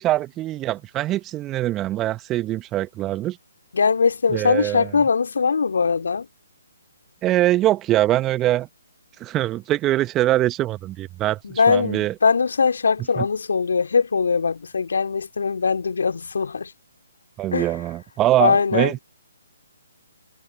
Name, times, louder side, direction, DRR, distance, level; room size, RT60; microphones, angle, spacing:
voice 1, 0.0-3.4 4.3-4.9 7.2-8.7 9.2-12.1 13.2-13.3 17.4-19.0, right 14 dB, 20° right, 0.9 m, -23 dB
voice 2, 3.7-6.3 11.4-16.7 17.5-17.7 18.4-18.9, left 5 dB, 65° left, 3.0 m, -21 dB
figure-of-eight pair, 135°, 0 cm